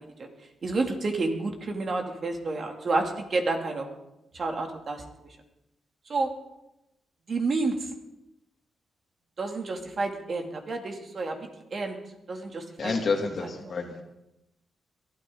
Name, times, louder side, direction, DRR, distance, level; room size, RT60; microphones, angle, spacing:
voice 1, 0.6-3.9 4.3-5.0 6.1-6.3 7.3-7.8 9.4-12.0 12.3-13.7, right 3 dB, 55° right, 3 dB, 2.6 m, -30 dB
voice 2, 12.8-14.0, left 4 dB, 60° left, 3 dB, 2.6 m, -29 dB
22.0 x 12.0 x 3.9 m, 0.89 s
cardioid pair, 65°, 0 cm